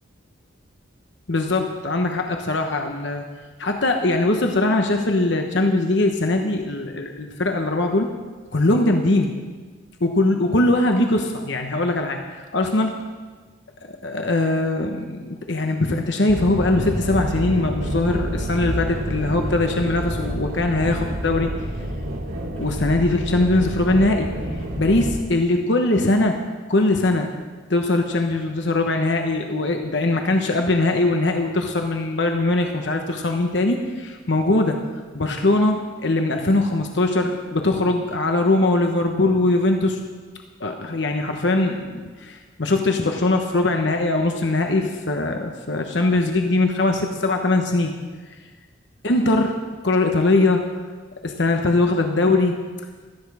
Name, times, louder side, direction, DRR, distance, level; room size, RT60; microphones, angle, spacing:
voice 1, 1.3-3.2 3.6-8.1 8.5-9.3 10.0-13.0 13.9-21.5 22.6-24.3 24.8-26.4 26.7-27.3 27.7-34.8 35.1-40.0 40.6-47.9 49.0-49.5 49.8-50.6 51.2-52.6, left 2 dB, 60° left, 4 dB, 1.1 m, -21 dB
sound 1, 16.3-25.2, equal, 75° right, 2.6 m, -28 dB
17.0 x 13.0 x 4.9 m, 1.4 s
head